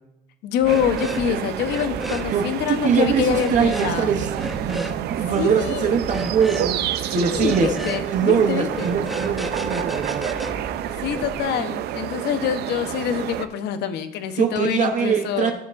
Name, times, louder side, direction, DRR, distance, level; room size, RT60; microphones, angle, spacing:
voice 1, 0.4-4.1 5.4-6.0 7.1-8.9 10.9-15.5, left 9 dB, 80° left, 9 dB, 0.8 m, -25 dB
sound 1, 0.6-1.3 1.6-2.3 3.3-3.9 4.3-5.0 6.0-6.7 7.4-8.1 8.7-11.4, right 1 dB, ahead, 0.7 m, -33 dB
sound 2, 0.7-13.5, right 11 dB, 75° right, 0.5 m, -29 dB
voice 2, 2.3-6.8 7.1-7.7 8.1-10.3 14.4-15.5, right 7 dB, 45° right, 4 dB, 0.8 m, -22 dB
13.0 x 7.3 x 2.5 m, 0.84 s
cardioid pair, 110°, 17 cm